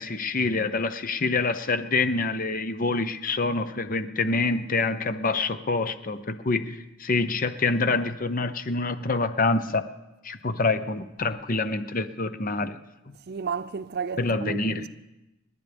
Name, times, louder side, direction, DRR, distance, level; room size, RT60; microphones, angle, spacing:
voice 1, 0.0-9.9 10.2-12.8 13.1-13.2 14.2-14.9, left 3 dB, 40° left, 0.8 m, -26 dB
voice 2, 13.3-14.9, right 5 dB, 50° right, 0.5 m, -32 dB
29.0 x 11.0 x 3.5 m
head